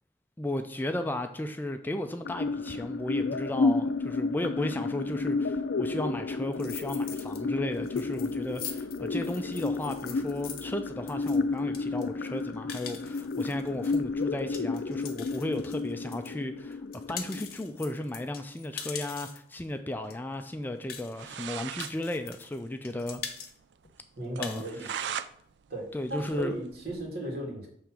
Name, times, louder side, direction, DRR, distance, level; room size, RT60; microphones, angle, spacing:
voice 1, 0.4-23.2 24.4-24.9 25.9-26.5, left 1 dB, 10° left, 7 dB, 0.3 m, -35 dB
sound 1, 2.3-18.2, left 3 dB, 90° left, 0.4 m, -32 dB
sound 2, 6.5-7.4 7.7-16.3 16.7-19.5 20.1-20.2 20.4-20.5 20.9-21.4 21.8-22.6 22.8-23.5 23.8-23.9 24.2-24.7, left 8 dB, 55° left, 0.8 m, -42 dB
sound 3, 20.9-21.0 21.1-22.0 22.3-22.4 22.6-22.7 23.1-23.2 23.6-23.7 24.4-25.3 25.7-27.0, right 8 dB, 85° right, 0.4 m, -38 dB
voice 2, 24.2-25.1 25.7-27.7, right 2 dB, 60° right, -1 dB, 2.2 m, -36 dB
6.5 x 3.4 x 5.9 m, 0.66 s
head